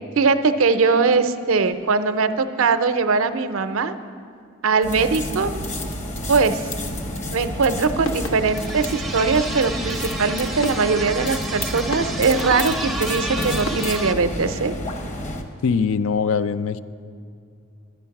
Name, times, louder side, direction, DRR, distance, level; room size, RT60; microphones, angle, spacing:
voice 1, 0.2-3.9 4.6-5.5 6.3-6.7 7.3-14.7, right 4 dB, 75° right, 10 dB, 0.6 m, -21 dB
sound 1, 4.8-15.4, left 1 dB, 35° left, 0.9 m, -30 dB
sound 2, 6.9-13.8, right 1 dB, 90° left, 1.1 m, -38 dB
sound 3, 8.3-14.1, right 2 dB, ahead, 0.5 m, -31 dB
voice 2, 15.6-16.8, left 5 dB, 70° left, 13 dB, 0.4 m, -21 dB
10.5 x 10.5 x 5.8 m, 2.4 s
head